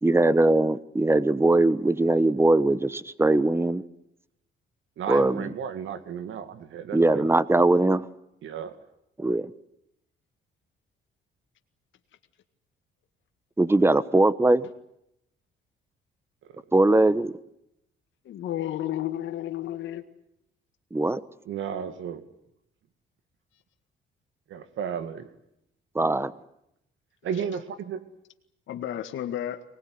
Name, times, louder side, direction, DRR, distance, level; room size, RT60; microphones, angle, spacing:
voice 1, 0.0-3.8 5.1-5.5 6.9-8.1 9.2-9.5 13.6-14.6 16.7-17.3 20.9-21.2 25.9-26.3, right 2 dB, 10° right, 16 dB, 1.2 m, -21 dB
voice 2, 5.0-7.3 8.4-8.8 16.4-16.6 21.5-22.2 24.5-25.3 27.2-28.0, right 8 dB, 75° right, 11 dB, 2.3 m, -33 dB
voice 3, 18.3-20.0 28.7-29.6, left 12 dB, 75° left, 6 dB, 1.9 m, -32 dB
24.0 x 20.0 x 9.6 m, 0.79 s
cardioid pair, 90°, 20 cm